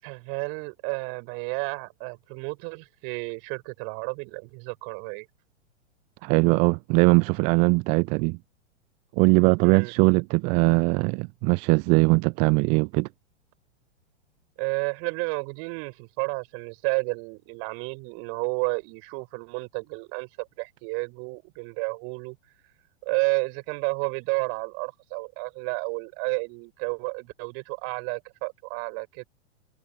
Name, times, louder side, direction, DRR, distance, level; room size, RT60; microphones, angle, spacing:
voice 1, 0.0-5.3 9.6-9.9 14.6-22.4 23.0-29.2, right 40 dB or more, 40° right, 6.1 m, -31 dB
voice 2, 6.2-8.4 9.2-13.1, right 31 dB, 20° right, 0.4 m, -21 dB
figure-of-eight pair, 100°, 35 cm